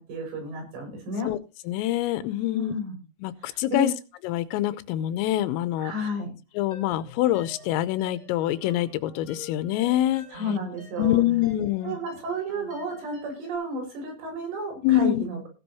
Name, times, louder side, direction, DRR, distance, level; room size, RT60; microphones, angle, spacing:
voice 1, 0.0-1.3 2.5-3.0 3.4-4.0 5.8-6.3 10.3-11.2 11.8-15.5, left 1 dB, 70° right, 2 dB, 8.9 m, -31 dB
voice 2, 1.7-2.7 3.2-3.9 4.2-5.9 6.6-10.2 11.0-12.0 14.8-15.2, left 14 dB, 90° left, 13 dB, 3.5 m, -25 dB
sound 1, 6.7-13.6, left 1 dB, 10° left, 7.0 m, -48 dB
16.5 x 11.0 x 3.0 m, 0.32 s
omnidirectional pair, 5.8 m